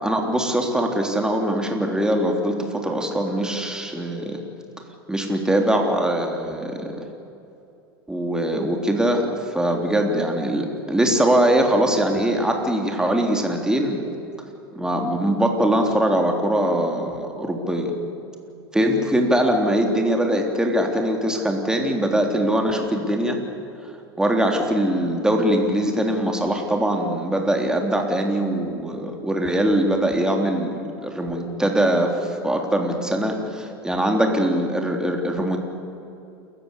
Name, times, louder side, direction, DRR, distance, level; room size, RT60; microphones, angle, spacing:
voice 1, 0.0-4.4 5.1-7.0 8.1-14.1 14.7-17.9 18.7-23.4 24.2-35.6, right 1 dB, 5° right, 2 dB, 3.5 m, -22 dB
28.0 x 15.0 x 8.4 m, 2.7 s
hypercardioid pair, 95°, 13 cm